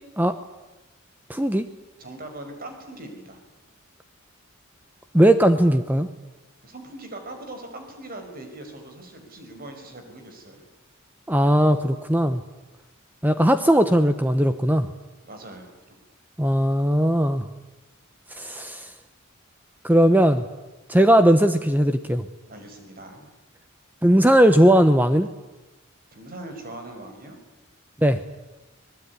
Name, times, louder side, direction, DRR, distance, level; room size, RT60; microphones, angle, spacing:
voice 1, 1.3-1.7 5.1-6.1 11.3-12.4 13.2-14.9 16.4-17.5 18.3-18.9 19.8-20.4 20.9-22.2 24.0-25.3 28.0-28.2, equal, 10° right, 9 dB, 0.9 m, -18 dB
voice 2, 2.0-3.4 6.6-10.7 15.2-16.0 22.5-23.3 26.1-27.4, right 1 dB, 45° right, 5 dB, 5.7 m, -40 dB
25.5 x 20.0 x 9.8 m, 1.1 s
head